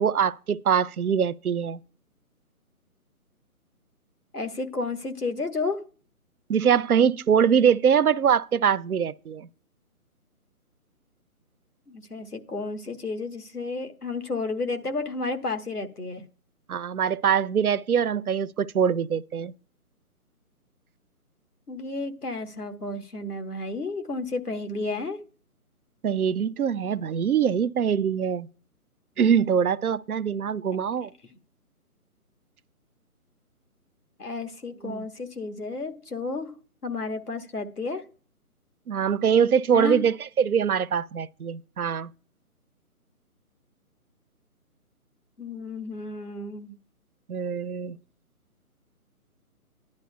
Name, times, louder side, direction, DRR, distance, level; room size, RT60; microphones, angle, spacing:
voice 1, 0.0-1.8 6.5-9.5 16.7-19.5 26.0-28.5 29.2-31.1 34.8-35.1 38.9-42.1 47.3-48.0, right 7 dB, 75° right, 0.5 m, -23 dB
voice 2, 4.3-5.8 11.9-16.2 21.7-25.2 34.2-36.5 36.8-38.0 39.7-40.0 45.4-46.8, left 3 dB, 85° left, 1.3 m, -32 dB
13.5 x 10.5 x 2.3 m
figure-of-eight pair, 145°, 45 cm